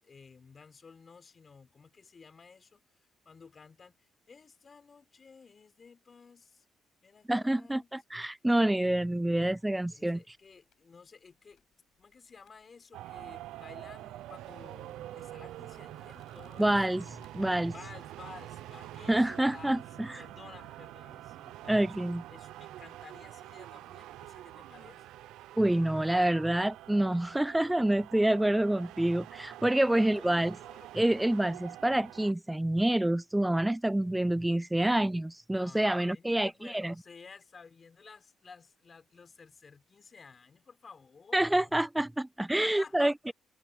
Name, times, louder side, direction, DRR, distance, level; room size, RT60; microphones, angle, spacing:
voice 1, 0.0-2.8 3.2-6.6 7.0-7.9 9.9-11.6 12.0-17.0 17.7-19.9 20.2-21.9 22.3-25.0 29.9-30.9 35.6-41.7 42.6-43.1, left 5 dB, 40° left, 5.2 m, -53 dB
voice 2, 7.3-10.4 16.6-17.7 19.1-20.2 21.7-22.2 25.6-30.6 30.9-36.9 41.3-43.3, right 1 dB, 10° right, 0.3 m, -27 dB
sound 1, 9.5-19.4, left 11 dB, 75° left, 7.7 m, -68 dB
sound 2, 12.9-32.3, right 14 dB, 90° right, 0.6 m, -46 dB
sound 3, 13.9-21.5, right 3 dB, 30° right, 7.4 m, -69 dB
cardioid pair, 90°, 0 cm